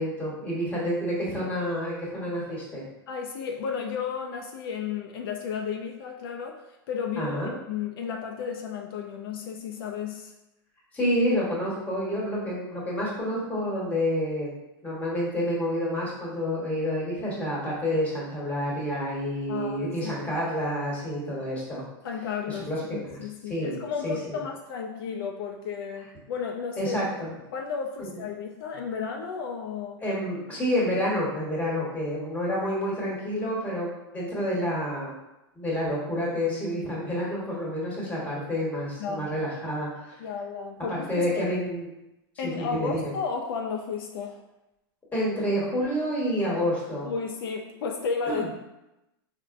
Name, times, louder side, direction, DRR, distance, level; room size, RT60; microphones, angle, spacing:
voice 1, 0.0-2.8 7.2-7.5 10.9-14.5 14.8-21.8 22.5-22.8 23.1-23.8 24.0-24.4 26.8-27.3 28.0-28.2 30.0-35.1 35.5-40.2 40.9-41.9 42.4-43.1 45.1-47.1 48.3-48.5, equal, 10° left, -6 dB, 1.0 m, -29 dB
voice 2, 3.1-6.6 6.9-7.3 7.7-10.3 19.5-20.3 22.0-26.9 27.5-30.0 39.0-39.3 40.2-41.4 42.4-44.4 47.0-48.5, left 6 dB, 70° left, 2 dB, 0.4 m, -33 dB
4.1 x 2.1 x 2.5 m, 0.94 s
supercardioid pair, 135°, 13 cm